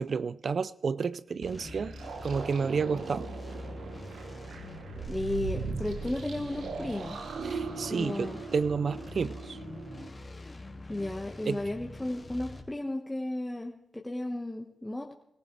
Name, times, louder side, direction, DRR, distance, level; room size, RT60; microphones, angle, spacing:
voice 1, 0.0-1.9 2.2-3.3 7.4-9.6 11.4-11.6, right 5 dB, 60° right, 0.4 m, -31 dB
sound 1, 1.4-12.6, left 2 dB, 40° left, 2.4 m, -44 dB
sound 2, 1.6-10.1, right 5 dB, 80° right, 1.1 m, -39 dB
voice 2, 5.0-7.2 7.9-8.4 10.9-15.1, left 1 dB, 15° left, 1.5 m, -34 dB
20.5 x 14.5 x 3.4 m
supercardioid pair, 45°, 0 cm